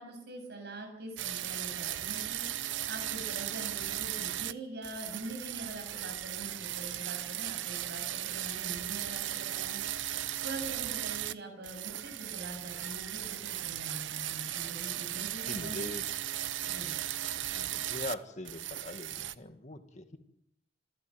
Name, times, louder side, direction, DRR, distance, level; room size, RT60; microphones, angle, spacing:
voice 1, 0.0-2.4 2.8-9.8 10.4-15.8 16.7-16.9, right 2 dB, 65° right, 4 dB, 7.7 m, -44 dB
sound 1, 1.2-4.5 4.8-11.3 11.6-18.1 18.5-19.4, right 12 dB, 85° right, 0.8 m, -36 dB
voice 2, 15.4-16.1 17.5-20.2, left 2 dB, 40° left, 7 dB, 2.0 m, -41 dB
26.5 x 12.5 x 7.9 m, 0.77 s
head